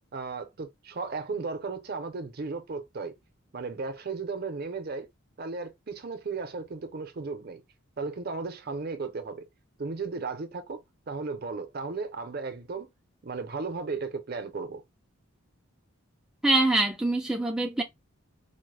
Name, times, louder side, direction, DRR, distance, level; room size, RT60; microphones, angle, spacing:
voice 1, 0.1-3.1 3.5-5.1 5.4-7.6 8.0-9.4 9.8-10.8 11.1-12.9 13.2-14.8, right 4 dB, 50° right, 0.6 m, -35 dB
voice 2, 16.4-17.8, right 2 dB, 5° right, 0.3 m, -24 dB
4.3 x 2.1 x 3.2 m
head